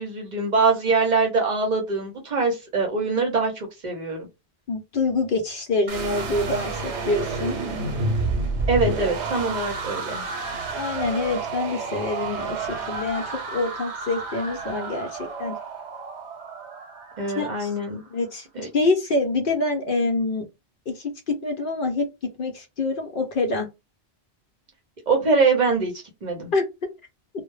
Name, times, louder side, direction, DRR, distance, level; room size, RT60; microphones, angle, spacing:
voice 1, 0.0-4.3 8.7-10.2 17.2-18.0 18.5-18.7 25.1-26.5, right 3 dB, 50° right, 0.7 m, -23 dB
voice 2, 4.7-7.6 10.7-13.2 13.5-15.6 17.4-17.7 18.1-20.5 20.9-22.0 22.4-23.7 26.5-26.6, left 3 dB, 60° left, 0.7 m, -26 dB
sound 1, 5.9-17.9, right 3 dB, 90° right, 0.9 m, -30 dB
2.1 x 2.0 x 3.0 m
omnidirectional pair, 1.1 m